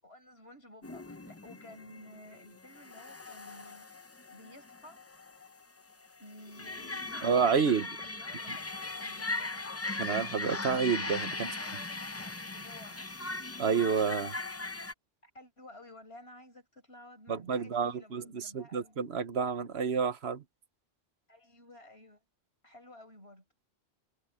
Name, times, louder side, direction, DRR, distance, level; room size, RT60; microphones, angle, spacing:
voice 1, 0.0-3.9 4.3-5.0 6.2-9.8 11.3-13.0 15.2-19.0 21.3-22.2 22.6-23.5, left 1 dB, 70° left, 7.0 m, -53 dB
sound 1, 0.8-14.9, left 3 dB, 15° left, 0.5 m, -39 dB
voice 2, 7.2-7.9 10.0-11.5 13.6-14.3 17.3-20.4, right 6 dB, 75° right, 1.3 m, -29 dB
omnidirectional pair, 1.1 m